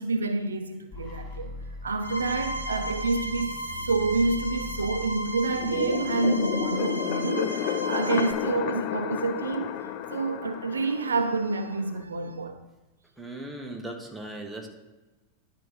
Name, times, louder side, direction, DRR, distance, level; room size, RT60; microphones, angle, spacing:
voice 1, 0.0-1.5 1.8-12.6, right 3 dB, 75° right, 0.5 m, -28 dB
sound 1, 0.9-6.8, left 3 dB, 25° left, 3.0 m, -41 dB
sound 2, 2.0-8.3, right 1 dB, 85° left, 1.2 m, -35 dB
sound 3, 5.5-12.0, left 10 dB, 45° left, 0.5 m, -32 dB
voice 2, 13.2-14.7, right 1 dB, 5° right, 1.3 m, -38 dB
10.5 x 3.7 x 6.7 m
figure-of-eight pair, 90°, 0 cm